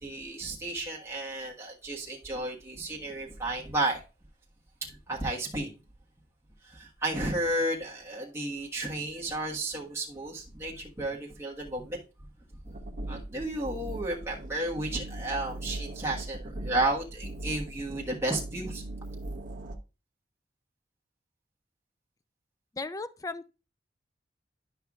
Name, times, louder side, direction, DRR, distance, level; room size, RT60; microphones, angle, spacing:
voice 1, 0.0-4.0 4.9-5.7 6.6-12.0 12.6-12.7 13.1-18.8, right 1 dB, 15° right, 1.3 m, -33 dB
sound 1, 12.6-19.8, right 1 dB, 45° right, 0.9 m, -39 dB
voice 2, 22.7-23.5, left 3 dB, 20° left, 0.4 m, -36 dB
10.5 x 5.6 x 2.4 m
head